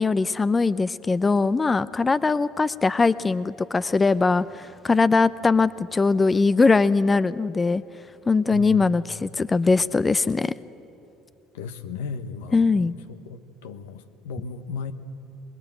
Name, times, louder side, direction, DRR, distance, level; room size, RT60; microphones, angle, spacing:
voice 1, 0.0-7.8 8.3-10.5 12.5-12.9, left 4 dB, 25° left, 16 dB, 0.5 m, -21 dB
voice 2, 8.5-8.8 11.5-12.8 13.3-14.9, left 5 dB, 75° left, 9 dB, 1.1 m, -35 dB
23.0 x 21.0 x 8.0 m, 2.8 s
hypercardioid pair, 60°, 0 cm